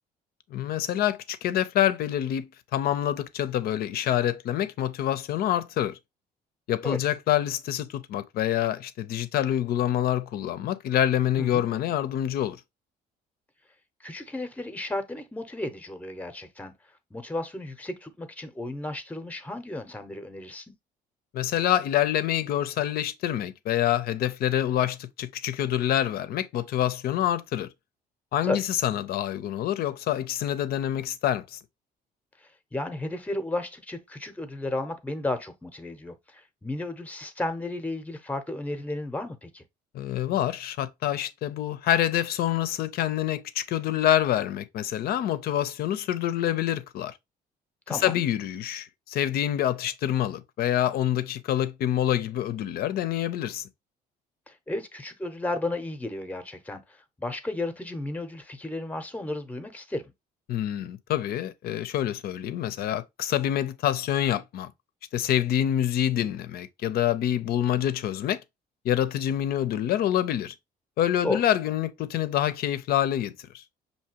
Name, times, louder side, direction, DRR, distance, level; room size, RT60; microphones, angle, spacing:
voice 1, 0.5-6.0 6.7-12.6 21.3-27.7 28.3-31.6 39.9-47.1 47.9-53.7 60.5-64.7 65.1-68.4 68.8-70.5 71.0-73.6, left 11 dB, 65° left, 0.5 m, -26 dB
voice 2, 14.0-16.7 17.1-20.6 28.4-28.6 32.7-39.6 47.9-48.2 54.5-56.8 57.2-60.1 71.2-71.4, left 2 dB, 10° left, 0.7 m, -33 dB
5.6 x 2.8 x 2.8 m
cardioid pair, 110°, 17 cm